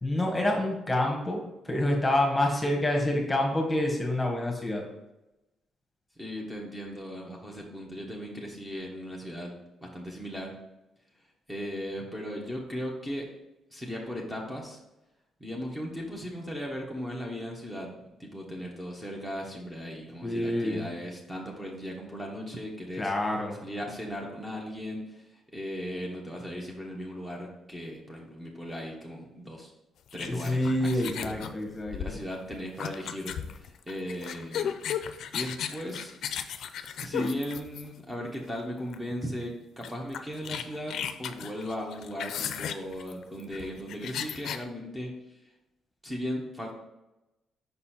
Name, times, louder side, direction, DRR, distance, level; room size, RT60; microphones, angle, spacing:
voice 1, 0.0-4.8 20.2-20.8 23.0-23.6 30.3-32.1, left 1 dB, 15° left, 0 dB, 1.4 m, -27 dB
voice 2, 6.2-9.5 9.8-10.5 11.5-13.3 13.7-14.8 15.4-17.9 18.2-23.1 23.6-29.7 30.1-31.3 31.9-34.7 35.3-36.1 37.0-45.4 46.0-46.7, equal, 10° right, -1 dB, 1.2 m, -37 dB
sound 1, 30.1-38.1 38.9-39.1 39.4-39.5 39.8-44.6, left 8 dB, 70° left, 0.4 m, -35 dB
5.5 x 4.2 x 4.3 m, 0.95 s
cardioid pair, 90°, 0 cm